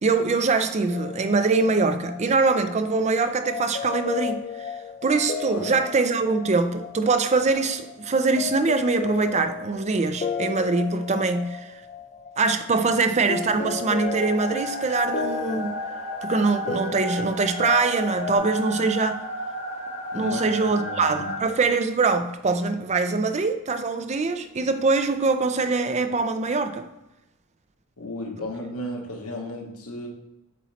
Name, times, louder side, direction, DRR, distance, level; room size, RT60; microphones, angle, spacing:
voice 1, 0.0-4.7 5.0-11.7 12.4-15.8 16.2-19.2 20.1-26.9, right 3 dB, 30° right, 8 dB, 0.5 m, -23 dB
sound 1, 0.9-18.4, left 6 dB, 35° left, 0.4 m, -35 dB
sound 2, 14.0-21.4, left 1 dB, 75° right, 2.0 m, -33 dB
voice 2, 20.1-20.4 20.8-21.3 28.0-30.1, left 1 dB, 75° left, 1 dB, 1.3 m, -34 dB
8.1 x 3.1 x 4.1 m, 0.94 s
head